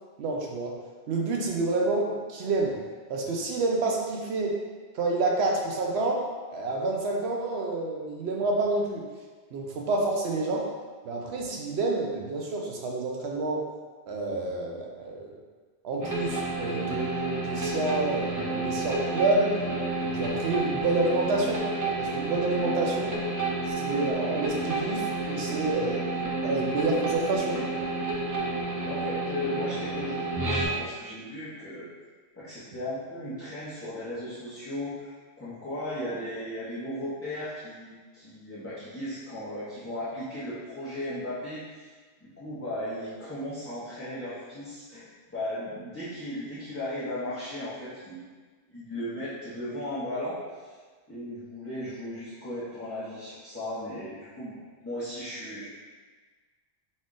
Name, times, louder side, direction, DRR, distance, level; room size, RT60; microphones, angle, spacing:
voice 1, 0.2-0.7 1.1-2.8 3.1-4.6 4.9-6.2 6.5-9.0 9.5-10.7 11.0-13.6 14.1-15.3 15.8-19.5 20.0-21.6 22.0-23.2 23.7-26.1 26.4-27.6, right 2 dB, 80° right, 0 dB, 0.9 m, -28 dB
sound 1, 16.0-30.7, right 2 dB, 30° right, 0.4 m, -30 dB
voice 2, 28.8-31.9 32.3-41.9 42.4-48.2 48.7-50.7 51.1-55.6, left 1 dB, 15° left, -12 dB, 0.8 m, -36 dB
4.2 x 2.4 x 3.8 m, 1.4 s
omnidirectional pair, 1.1 m